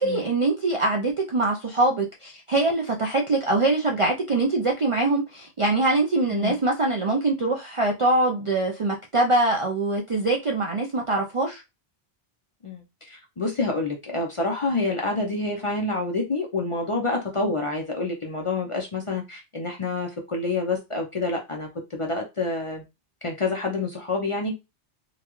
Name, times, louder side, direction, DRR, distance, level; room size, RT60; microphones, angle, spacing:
voice 1, 0.0-11.6, right 2 dB, 50° right, 0.4 m, -23 dB
voice 2, 12.6-22.8 23.2-24.5, left 3 dB, 40° left, 0.5 m, -28 dB
3.8 x 2.3 x 3.0 m
omnidirectional pair, 1.1 m